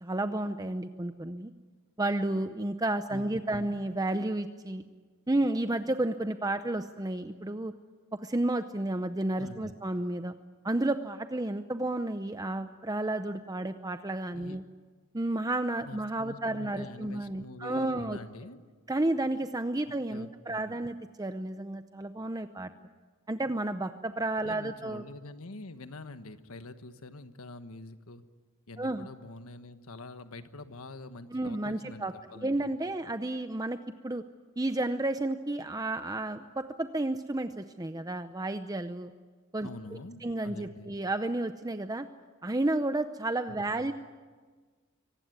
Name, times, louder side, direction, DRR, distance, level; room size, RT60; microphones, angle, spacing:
voice 1, 0.0-1.5 2.0-4.8 5.3-7.7 8.2-10.3 10.6-14.6 15.1-18.2 18.9-22.7 23.3-25.0 28.8-29.1 31.3-32.1 32.4-33.8 34.0-34.2 34.6-39.1 39.5-39.7 40.2-42.1 42.4-43.9, right 2 dB, 15° right, 9 dB, 0.6 m, -31 dB
voice 2, 3.1-3.8 9.3-9.7 14.3-14.6 15.8-18.6 19.9-20.8 24.4-28.2 28.7-32.7 39.6-40.9 43.5-43.9, left 2 dB, 90° left, 10 dB, 1.4 m, -46 dB
24.5 x 18.5 x 9.5 m, 1.5 s
head